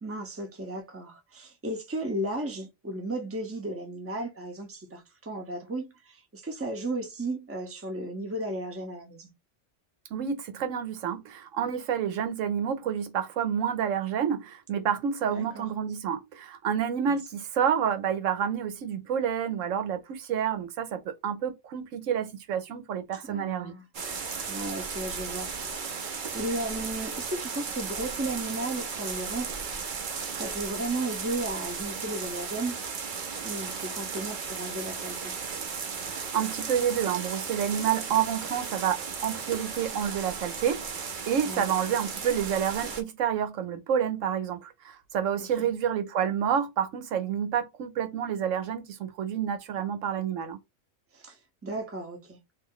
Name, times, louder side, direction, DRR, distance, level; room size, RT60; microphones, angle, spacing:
voice 1, 0.0-9.3 15.3-15.7 17.1-17.2 23.2-23.8 24.5-29.5 30.4-32.8 33.4-35.3 41.4-41.7 45.4-45.7 51.1-52.4, right 2 dB, 15° right, 0.7 m, -35 dB
voice 2, 10.1-23.7 36.1-50.6, right 8 dB, 90° right, 1.1 m, -29 dB
sound 1, 23.9-43.0, right 5 dB, 50° right, 0.7 m, -35 dB
3.1 x 2.6 x 3.7 m
omnidirectional pair, 1.3 m